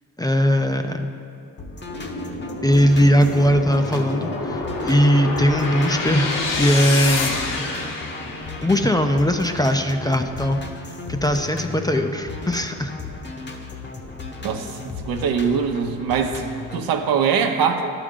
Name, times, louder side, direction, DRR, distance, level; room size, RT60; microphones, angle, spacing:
voice 1, 0.2-1.1 2.6-7.6 8.6-10.6 11.1-12.9, equal, 10° left, 5 dB, 0.5 m, -19 dB
sound 1, 1.6-16.8, left 2 dB, 30° left, 0.9 m, -35 dB
sound 2, 1.9-9.1, left 3 dB, 60° left, 1.3 m, -28 dB
voice 2, 14.4-16.4 16.7-17.9, right 6 dB, 70° right, 5 dB, 0.8 m, -22 dB
12.0 x 4.9 x 3.8 m, 2.4 s
supercardioid pair, 60°, 36 cm